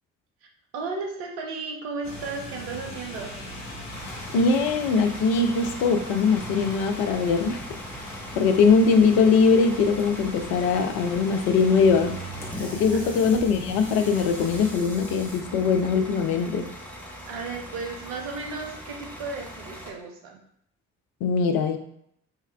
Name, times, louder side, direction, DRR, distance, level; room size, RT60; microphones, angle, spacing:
voice 1, 0.7-3.3 12.9-13.3 17.2-20.4, right 4 dB, 65° right, 1 dB, 0.8 m, -34 dB
sound 1, 2.0-14.7, left 1 dB, 40° left, 1.3 m, -40 dB
Bus / Idling, 3.9-19.9, equal, 5° left, 0.7 m, -41 dB
voice 2, 4.3-7.6 8.4-12.2 12.6-16.7 21.2-21.8, left 5 dB, 60° left, 6 dB, 0.5 m, -21 dB
sound 2, 11.1-16.1, right 5 dB, 20° right, 1.1 m, -44 dB
3.4 x 3.2 x 2.3 m, 0.70 s
figure-of-eight pair, 40°, 41 cm